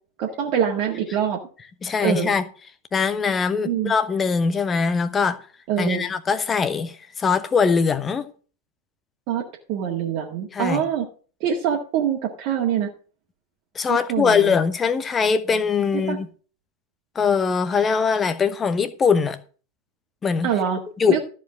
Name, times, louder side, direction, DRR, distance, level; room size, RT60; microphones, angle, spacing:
voice 1, 0.2-1.4 2.0-2.3 3.7-3.9 5.7-6.1 9.3-9.4 9.7-11.1 11.4-12.9 13.9-14.6 16.1-16.2 20.4-20.8 21.1-21.2, right 8 dB, 45° right, 1.8 m, -24 dB
voice 2, 1.8-2.4 2.9-5.4 5.8-8.3 10.5-10.8 13.7-16.3 17.1-19.4 20.2-20.5 21.0-21.2, left 5 dB, 20° left, 1.0 m, -21 dB
13.5 x 5.1 x 6.3 m
figure-of-eight pair, 90°, 0 cm